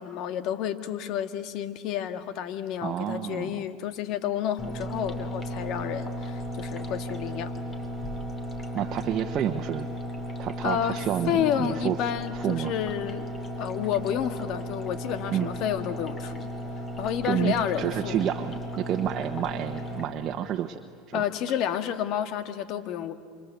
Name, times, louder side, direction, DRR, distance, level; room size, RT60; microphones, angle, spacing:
voice 1, 0.0-7.5 10.6-13.3 13.6-16.5 17.0-18.2 21.1-23.1, left 10 dB, 60° left, 10 dB, 1.8 m, -30 dB
voice 2, 2.8-3.6 8.7-9.9 10.4-12.0 12.3-12.7 15.3-15.5 17.2-20.8 21.1-21.2, right 10 dB, 45° right, 5 dB, 1.2 m, -29 dB
sound 1, 4.6-20.0, equal, 30° left, 4.0 m, -35 dB
27.5 x 25.0 x 8.4 m, 2.2 s
hypercardioid pair, 90°, 0 cm